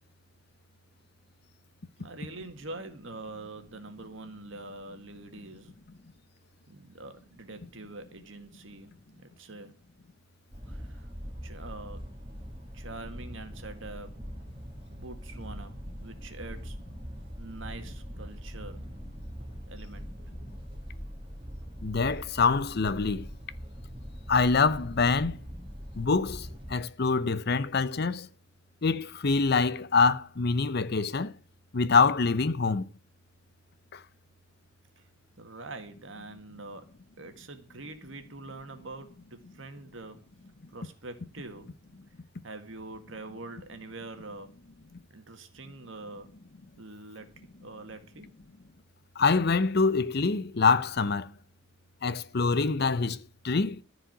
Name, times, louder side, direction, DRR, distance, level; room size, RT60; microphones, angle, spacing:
voice 1, 2.0-5.7 6.7-9.8 10.7-11.1 11.4-12.0 12.7-14.2 14.9-16.8 17.4-18.8 19.7-20.1 35.4-36.9 37.2-40.3 40.7-41.7 42.4-44.6 45.1-46.3 46.8-48.3, right 2 dB, 65° right, 2.0 m, -44 dB
sound 1, 10.5-26.8, equal, 25° right, 2.8 m, -42 dB
voice 2, 21.8-23.3 24.3-25.4 25.9-28.3 28.8-31.3 31.7-32.8 33.9-34.0 49.2-51.3 52.0-53.8, left 4 dB, 50° left, 0.7 m, -25 dB
14.0 x 5.0 x 9.1 m
head